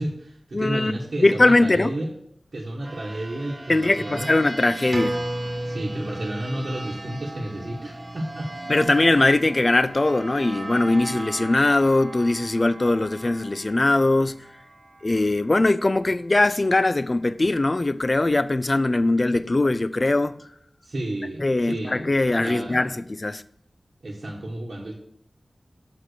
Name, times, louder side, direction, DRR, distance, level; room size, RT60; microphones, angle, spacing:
voice 1, 0.0-2.1 2.5-4.4 5.6-8.5 8.8-8.9 20.9-22.9 24.0-24.9, right 1 dB, 65° right, 1.1 m, -32 dB
voice 2, 0.5-0.9 1.2-2.0 3.7-5.2 8.7-14.4 15.0-20.4 21.4-23.4, left 2 dB, 40° left, 0.3 m, -21 dB
sound 1, 2.8-16.1, right 2 dB, 40° right, 0.6 m, -39 dB
sound 2, 4.9-9.9 10.2-10.3, right 1 dB, 20° right, 1.6 m, -33 dB
5.5 x 5.1 x 6.4 m
wide cardioid pair, 75°, 0 cm